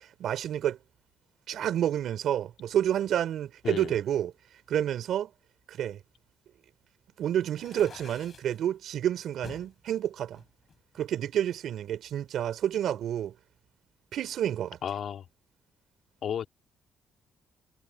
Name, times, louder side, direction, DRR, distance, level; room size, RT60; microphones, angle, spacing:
voice 1, 0.2-0.8 1.5-4.3 4.7-5.3 5.7-6.0 7.2-10.4 11.0-13.3 14.1-14.8, right 10 dB, 70° right, 4.4 m, -29 dB
voice 2, 3.6-4.0 14.8-15.2 16.2-16.5, left 8 dB, 65° left, 1.9 m, -33 dB
sound 1, 7.5-8.6 9.4-9.7 10.3-11.4, left 6 dB, 45° left, 7.4 m, -48 dB
cardioid pair, 90°, 0 cm